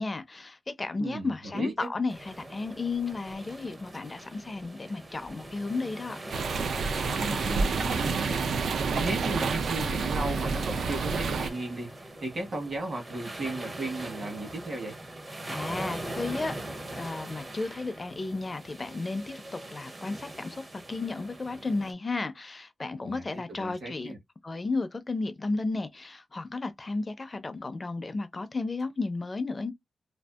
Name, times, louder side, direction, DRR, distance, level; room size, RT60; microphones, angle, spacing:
voice 1, 0.0-6.2 15.5-16.6 16.9-24.1 24.4-29.7, left 3 dB, 30° left, 0.4 m, -33 dB
voice 2, 1.0-1.9 7.2-8.4 8.9-15.0 23.0-24.2, right 2 dB, 55° right, 1.1 m, -35 dB
sound 1, 2.1-21.9, right 1 dB, 25° right, 0.5 m, -42 dB
sound 2, 6.3-11.5, right 4 dB, 85° right, 0.3 m, -29 dB
2.6 x 2.3 x 2.3 m
wide cardioid pair, 135°, 0 cm